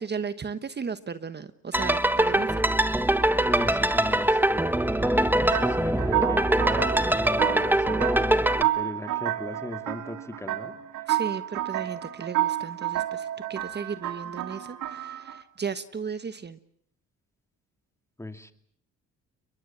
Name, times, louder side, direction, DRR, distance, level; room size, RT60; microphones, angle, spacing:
voice 1, 0.0-2.6 11.1-16.6, right 6 dB, 35° right, 11 dB, 1.3 m, -35 dB
sound 1, 1.7-8.6, right 1 dB, 5° right, 1.4 m, -23 dB
voice 2, 3.5-4.7 5.0-10.7 18.2-18.5, left 2 dB, 10° left, 8 dB, 2.5 m, -36 dB
sound 2, 5.5-15.4, right 14 dB, 90° right, 2.6 m, -30 dB
29.5 x 22.0 x 7.3 m, 0.64 s
cardioid pair, 90°, 30 cm